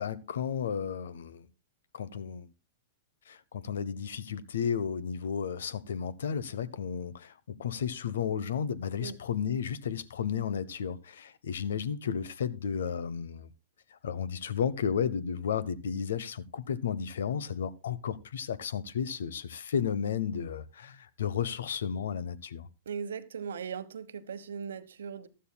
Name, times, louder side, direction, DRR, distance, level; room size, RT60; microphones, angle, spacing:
voice 1, 0.0-1.5 1.9-2.5 3.3-13.5 13.9-22.7, left 7 dB, 80° left, 0.8 m, -33 dB
voice 2, 22.9-25.3, right 7 dB, 85° right, 1.0 m, -38 dB
15.5 x 11.5 x 2.2 m
hypercardioid pair, 125°, 0 cm